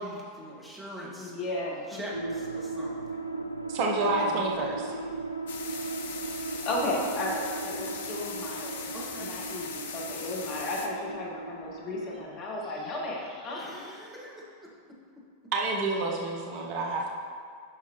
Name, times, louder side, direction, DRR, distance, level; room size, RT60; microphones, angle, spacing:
voice 1, 0.0-1.4 1.9-3.2 5.1-5.7 6.0-6.2 8.9-9.4 13.5-14.7 16.6-16.7, equal, 10° right, -5 dB, 1.7 m, -43 dB
voice 2, 1.2-2.3 4.0-4.4 6.6-8.9 9.2-14.0, left 1 dB, 40° left, -2 dB, 1.5 m, -34 dB
sound 1, 2.1-12.3, right 3 dB, 85° left, 0.3 m, -37 dB
voice 3, 3.7-5.0 15.5-17.1, right 2 dB, 45° right, 0 dB, 0.9 m, -28 dB
sound 2, 5.5-10.9, left 5 dB, 60° left, 0.7 m, -39 dB
9.6 x 5.8 x 3.0 m, 2.2 s
figure-of-eight pair, 90°, 0 cm